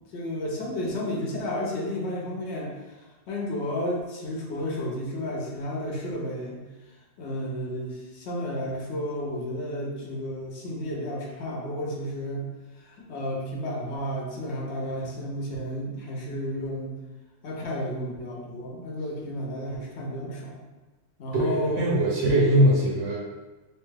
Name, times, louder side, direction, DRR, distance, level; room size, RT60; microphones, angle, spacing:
voice 1, 0.1-6.6 7.2-12.4 12.8-17.0 17.4-20.6 21.2-22.8, equal, 65° left, -2 dB, 0.9 m, -32 dB
voice 2, 21.4-23.2, equal, 80° right, -2 dB, 1.0 m, -21 dB
2.9 x 2.2 x 3.2 m, 1.2 s
omnidirectional pair, 1.3 m